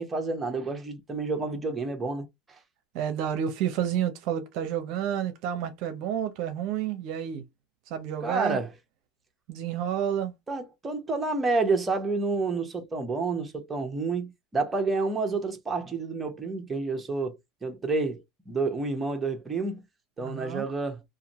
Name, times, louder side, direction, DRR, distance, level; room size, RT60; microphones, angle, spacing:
voice 1, 0.0-2.3 8.2-8.7 10.5-19.8 20.2-21.0, right 3 dB, 15° right, 0.9 m, -29 dB
voice 2, 2.9-7.5 7.9-8.6 9.5-10.3 20.2-20.7, right 9 dB, 60° right, 0.6 m, -30 dB
2.5 x 2.5 x 2.9 m
supercardioid pair, 120°, 0 cm